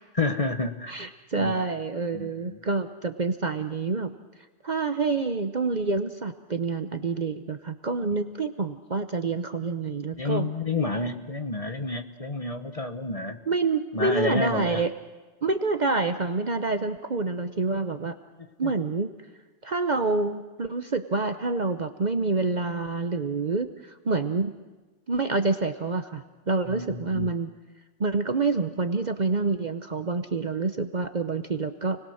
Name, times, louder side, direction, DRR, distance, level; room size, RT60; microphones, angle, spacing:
voice 1, 0.1-0.9 1.4-1.6 2.1-2.6 10.2-13.4 13.9-14.8 18.6-18.7 26.7-27.3, left 2 dB, 30° left, 7 dB, 1.1 m, -29 dB
voice 2, 0.9-4.1 4.6-10.5 13.5-14.9 15.4-18.2 18.6-19.1 19.6-24.5 25.1-27.5 28.0-32.0, right 3 dB, 40° right, 8 dB, 0.9 m, -27 dB
29.5 x 20.5 x 6.5 m, 1.2 s
omnidirectional pair, 1.3 m